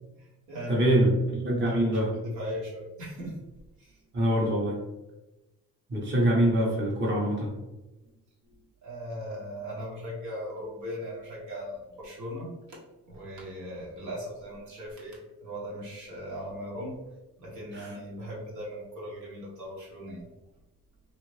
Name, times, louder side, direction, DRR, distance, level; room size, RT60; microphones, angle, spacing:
voice 1, 0.2-1.2 1.6-3.4 3.8-4.0 8.5-12.8 13.1-17.0 17.4-20.2, equal, 75° right, -5 dB, 1.2 m, -38 dB
voice 2, 0.7-2.1 4.1-4.7 5.9-7.5 17.7-17.9, right 1 dB, 35° right, -4 dB, 1.0 m, -24 dB
2.7 x 2.5 x 3.1 m, 1.0 s
cardioid pair, 90°, 30 cm